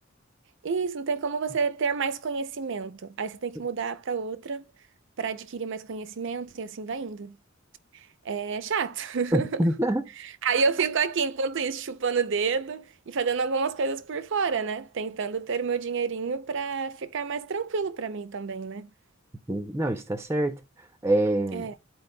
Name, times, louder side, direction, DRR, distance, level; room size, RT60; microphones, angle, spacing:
voice 1, 0.6-4.6 5.2-7.4 7.9-9.7 10.2-18.9 21.5-21.7, right 5 dB, 65° right, 0.6 m, -29 dB
voice 2, 9.3-10.0 19.5-20.6 21.0-21.7, right 1 dB, 15° right, 0.6 m, -25 dB
13.0 x 4.5 x 2.2 m
head